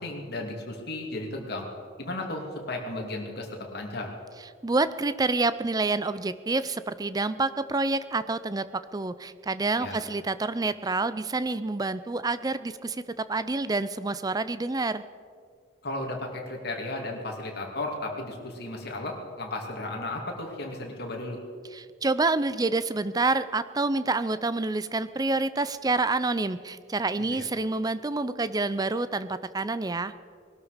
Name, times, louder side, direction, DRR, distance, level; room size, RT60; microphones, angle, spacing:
voice 1, 0.0-1.6 2.0-4.1 9.8-10.0 15.8-21.4 27.3-27.4, left 2 dB, 55° left, 1 dB, 2.5 m, -34 dB
voice 2, 4.6-13.0 13.3-15.0 21.7-30.1, right 3 dB, 20° right, 14 dB, 0.5 m, -28 dB
20.0 x 12.5 x 5.0 m, 2.2 s
head